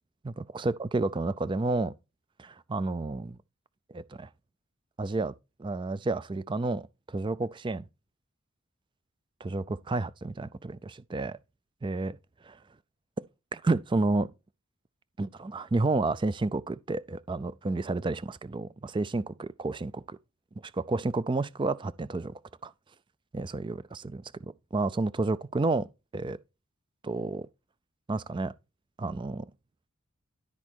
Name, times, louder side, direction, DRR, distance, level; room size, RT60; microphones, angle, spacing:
voice 1, 0.2-1.9 2.4-3.4 3.9-4.3 5.0-5.3 5.6-7.9 9.4-11.4 11.8-12.2 12.4-12.6 13.5-14.3 15.2-20.2 20.7-22.3 22.6-22.7 23.3-24.3 24.7-25.9 26.1-26.4 27.0-27.5 28.1-28.5 29.0-29.5, right 3 dB, 20° right, 0.4 m, -30 dB
12.0 x 4.2 x 4.5 m
head